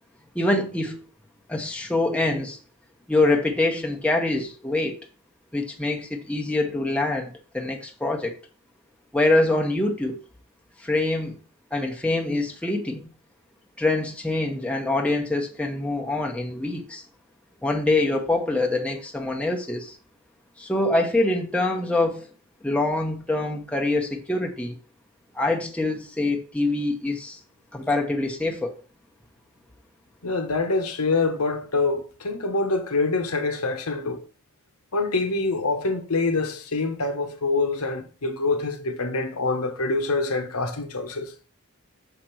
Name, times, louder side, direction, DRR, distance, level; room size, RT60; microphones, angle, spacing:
voice 1, 0.3-1.0 1.5-2.6 3.1-5.0 5.5-8.3 9.1-10.2 10.8-11.3 11.7-13.1 13.8-17.0 17.6-20.0 20.6-22.3 22.6-24.8 25.3-27.4 27.7-28.8, left 2 dB, 5° left, 1.0 m, -25 dB
voice 2, 30.2-34.2 34.9-41.3, left 3 dB, 85° left, 1.1 m, -25 dB
6.5 x 5.1 x 4.5 m
head